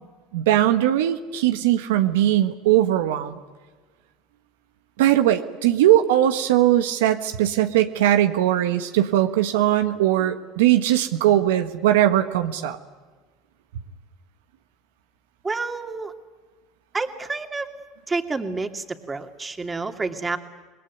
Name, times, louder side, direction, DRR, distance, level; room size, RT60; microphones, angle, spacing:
voice 1, 0.3-3.4 5.0-12.8, right 12 dB, 80° right, 7 dB, 1.4 m, -20 dB
voice 2, 15.4-16.1 16.9-17.7 18.1-20.4, right 3 dB, 20° right, 6 dB, 2.7 m, -29 dB
27.5 x 21.0 x 9.6 m, 1.3 s
hypercardioid pair, 85°, 0 cm